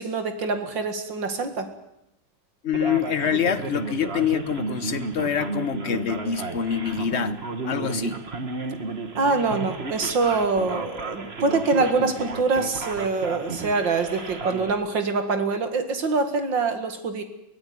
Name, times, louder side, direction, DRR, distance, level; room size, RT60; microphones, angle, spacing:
voice 1, 0.0-1.7 9.2-17.2, right 4 dB, 75° right, 8 dB, 2.8 m, -24 dB
voice 2, 2.6-7.4 7.6-8.2, left 7 dB, 40° left, 12 dB, 1.2 m, -26 dB
Male speech man speaking, 2.7-14.7, right 3 dB, 35° right, 1.8 m, -33 dB
23.5 x 16.0 x 9.6 m, 0.85 s
omnidirectional pair, 2.0 m